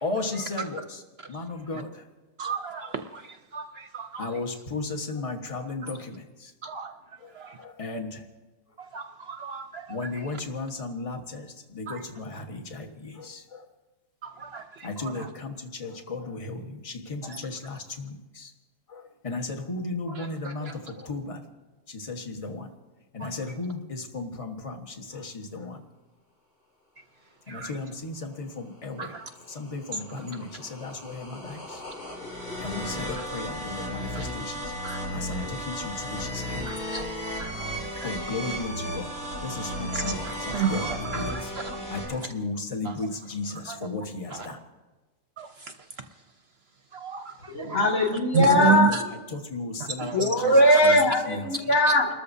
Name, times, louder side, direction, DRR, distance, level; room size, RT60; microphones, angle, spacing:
voice 1, 0.0-1.0 1.3-2.0 2.4-2.9 4.2-6.5 7.2-8.2 9.9-13.6 14.8-18.5 18.9-21.4 21.9-22.7 23.1-25.8 27.5-29.1 29.5-31.8 32.6-34.7 35.1-36.7 38.0-39.1 39.4-41.5 41.9-44.6 48.4-49.0 49.3-50.6 50.8-51.5, left 3 dB, 25° left, 4 dB, 1.3 m, -35 dB
voice 2, 2.4-3.2 3.5-3.7 3.9-4.3 6.6-6.9 7.4-7.5 8.9-9.8 14.2-14.6 27.5-27.7 29.0-29.2 34.1-34.2 34.8-35.0 36.7-37.1 37.4-37.7 38.0-38.1 39.9-41.4 45.4-45.5 46.9-47.2 47.6-47.8 48.3-48.9 50.0-50.5, right 7 dB, 55° right, 7 dB, 0.8 m, -30 dB
sound 1, 29.0-42.0, equal, 85° left, 6.7 m, -35 dB
voice 3, 47.5-48.9 50.1-52.1, left 1 dB, 70° left, -2 dB, 2.7 m, -20 dB
30.0 x 13.5 x 2.7 m, 1.2 s
omnidirectional pair, 1.5 m